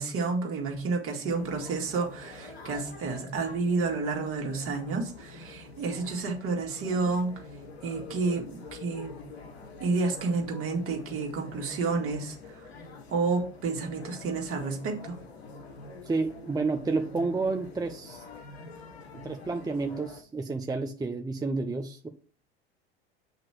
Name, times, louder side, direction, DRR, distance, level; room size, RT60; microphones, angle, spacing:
voice 1, 0.0-7.4 7.8-9.2 9.8-12.7 13.1-15.2, right 4 dB, 45° right, 3 dB, 2.0 m, -30 dB
sound 1, 1.3-20.2, left 3 dB, 85° left, 1.3 m, -46 dB
voice 2, 16.1-18.2 19.2-22.1, right 3 dB, 10° right, 5 dB, 0.7 m, -30 dB
8.1 x 3.0 x 6.0 m, 0.39 s
hypercardioid pair, 75°, 31 cm